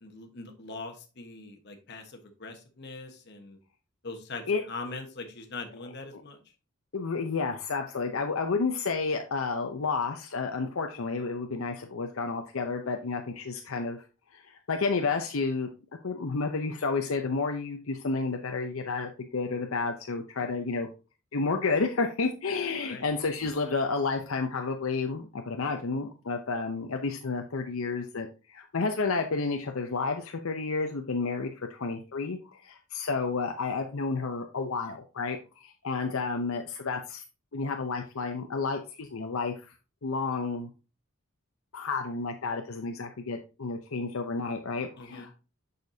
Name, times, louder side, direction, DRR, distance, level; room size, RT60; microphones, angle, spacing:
voice 1, 0.0-3.6 4.0-4.4 4.7-6.4 22.8-23.0 45.0-45.3, left 3 dB, 50° left, 5 dB, 1.2 m, -41 dB
voice 2, 6.9-14.0 14.3-15.7 16.0-20.9 21.3-37.2 37.5-39.7 40.0-40.7 41.7-45.3, left 4 dB, 70° left, 4 dB, 0.7 m, -31 dB
6.7 x 6.5 x 2.7 m, 0.32 s
head